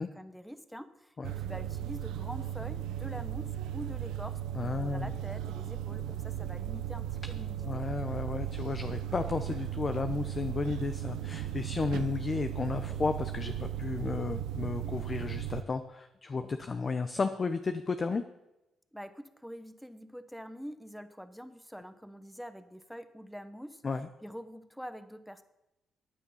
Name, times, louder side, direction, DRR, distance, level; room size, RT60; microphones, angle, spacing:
voice 1, 0.0-7.8 18.9-23.8 24.2-25.4, equal, ahead, 11 dB, 1.1 m, -45 dB
sound 1, 1.2-15.6, right 11 dB, 85° right, 0.6 m, -36 dB
voice 2, 4.5-5.1 7.6-18.2 23.8-24.1, left 4 dB, 35° left, 8 dB, 0.9 m, -33 dB
15.0 x 9.4 x 5.6 m, 0.93 s
cardioid pair, 90°, 0 cm